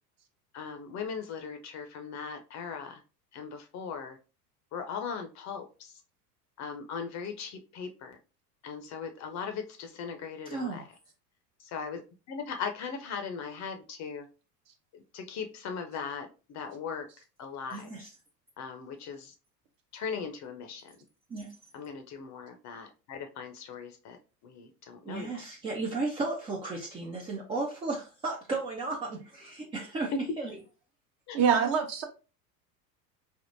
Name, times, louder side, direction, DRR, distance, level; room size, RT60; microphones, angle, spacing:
voice 1, 0.5-3.0 3.3-4.2 4.7-5.9 6.6-8.2 8.6-10.8 11.6-12.0 12.3-14.3 14.9-17.1 17.4-17.9 18.6-19.3 19.9-20.8 21.7-25.4 30.1-30.2 31.3-31.4, left 5 dB, 35° left, 0.6 m, -38 dB
voice 2, 10.5-10.8 17.7-18.1 21.3-21.5 25.0-30.6 31.6-31.7, right 3 dB, 15° right, 0.3 m, -34 dB
voice 3, 31.3-32.0, right 7 dB, 45° right, 0.9 m, -24 dB
3.5 x 2.5 x 2.6 m
hypercardioid pair, 85°, 48 cm